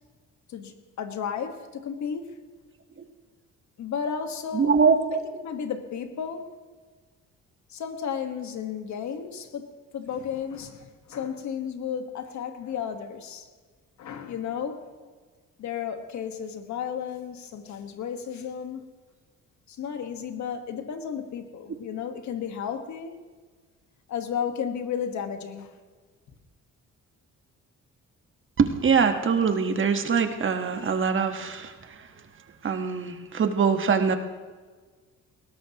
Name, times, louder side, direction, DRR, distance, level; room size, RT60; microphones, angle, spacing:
voice 1, 0.5-2.4 3.8-4.7 5.4-6.5 7.7-13.5 14.0-14.9 15.6-18.9 19.7-23.1 24.1-25.8, left 7 dB, 70° left, 1.5 m, -33 dB
voice 2, 4.5-5.2 28.6-32.0 32.6-34.2, right 5 dB, 40° right, 1.3 m, -23 dB
19.5 x 17.5 x 3.0 m
cardioid pair, 90°, 30 cm